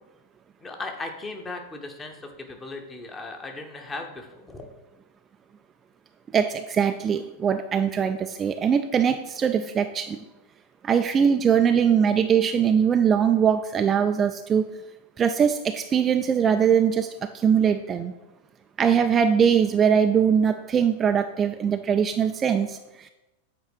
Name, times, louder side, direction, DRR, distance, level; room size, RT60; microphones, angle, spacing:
voice 1, 0.6-4.7, left 3 dB, 15° left, 4 dB, 1.1 m, -37 dB
voice 2, 6.3-10.2 10.8-14.7 15.2-18.1 18.8-23.1, right 7 dB, 25° right, 7 dB, 0.3 m, -22 dB
8.0 x 4.4 x 4.9 m, 0.98 s
figure-of-eight pair, 90°, 0 cm